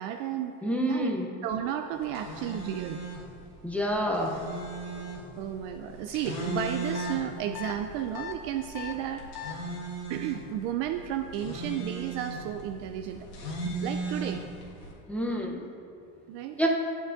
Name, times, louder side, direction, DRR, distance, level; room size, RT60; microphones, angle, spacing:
voice 1, 0.0-0.6 0.9-1.1 1.4-3.0 5.4-9.3 9.6-9.7 10.1-13.2 13.6-14.4 16.3-16.7, right 10 dB, 60° right, 6 dB, 0.5 m, -33 dB
voice 2, 0.6-1.3 3.6-4.4 15.1-15.6 16.6-16.7, equal, 5° left, 0 dB, 0.6 m, -28 dB
sound 1, 2.0-14.9, right 2 dB, 90° left, 1.7 m, -38 dB
sound 2, 6.9-7.1 7.5-7.7 8.1-8.3 8.7-8.9 9.3-9.5, left 11 dB, 50° left, 0.7 m, -37 dB
8.5 x 8.0 x 2.5 m, 2.7 s
supercardioid pair, 105°, 47 cm